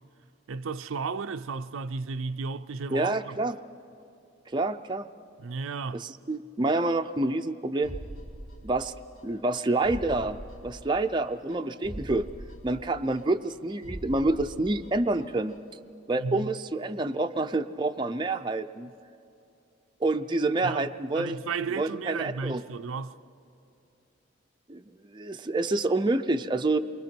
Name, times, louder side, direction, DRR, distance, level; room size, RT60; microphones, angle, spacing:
voice 1, 0.5-3.4 5.4-6.1 16.2-16.5 20.6-20.9 21.1-23.1, right 4 dB, 85° right, 0.5 m, -34 dB
voice 2, 2.9-3.6 4.5-5.1 5.9-7.9 8.6-8.9 9.2-10.4 10.6-12.3 12.6-15.5 16.1-18.9 20.0-21.4 21.8-22.6 24.7-24.8 25.1-26.8, right 2 dB, 25° right, 0.4 m, -27 dB
sound 1, 7.8-9.2 9.5-9.6 9.8-11.2 11.5-11.6 11.8-13.5 13.8-15.2 15.5-15.6, right 1 dB, 90° left, 2.2 m, -42 dB
28.5 x 23.5 x 4.4 m
head